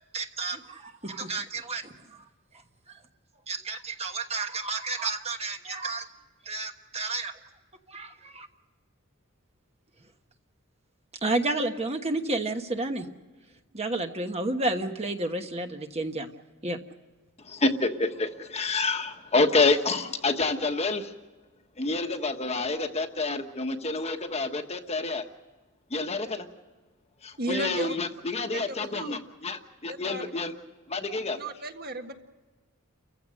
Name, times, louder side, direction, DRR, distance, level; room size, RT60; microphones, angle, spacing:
voice 1, 0.1-2.2 2.9-3.0 3.5-6.1 6.4-7.4 7.9-8.5 11.2-13.1 13.7-16.3 16.6-16.8, right 2 dB, 30° right, 5 dB, 1.2 m, -31 dB
voice 2, 17.4-21.1 21.8-25.3 25.9-26.5 27.2-30.5 30.9-31.4, left 3 dB, 30° left, 6 dB, 1.3 m, -28 dB
voice 3, 27.4-28.0 28.5-29.2 29.9-30.3 31.3-32.1, right 2 dB, 45° right, 5 dB, 1.8 m, -34 dB
29.5 x 15.5 x 6.4 m, 1.3 s
head